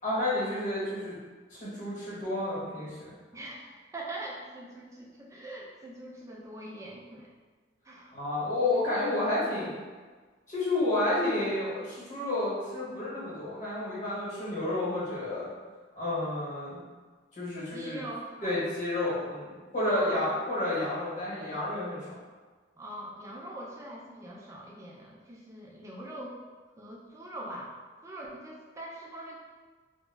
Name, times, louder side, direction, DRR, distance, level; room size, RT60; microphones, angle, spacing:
voice 1, 0.0-1.2 1.5-3.1 8.1-9.8 10.5-15.5 15.9-16.8 17.3-18.0 18.4-22.2, left 1 dB, 40° left, -8 dB, 1.0 m, -30 dB
voice 2, 3.3-7.3 7.8-8.1 17.7-18.6 19.8-20.4 22.8-26.4 26.8-27.8 28.0-29.4, right 1 dB, 15° right, -3 dB, 0.3 m, -42 dB
2.2 x 2.0 x 3.3 m, 1.4 s
head